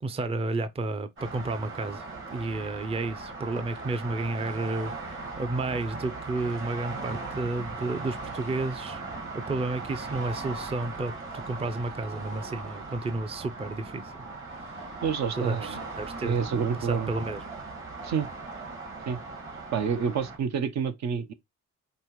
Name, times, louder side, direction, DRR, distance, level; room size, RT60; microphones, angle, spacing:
voice 1, 0.0-9.0 9.3-11.1 11.5-14.2 15.4-17.4, right 2 dB, 20° right, 0.5 m, -32 dB
sound 1, 1.2-20.4, right 3 dB, 40° right, 1.8 m, -39 dB
voice 2, 15.0-15.8 16.2-17.1 18.0-18.3 19.1-19.2 19.7-21.3, right 7 dB, 65° right, 0.8 m, -28 dB
5.4 x 2.9 x 3.0 m
cardioid pair, 90°, 30 cm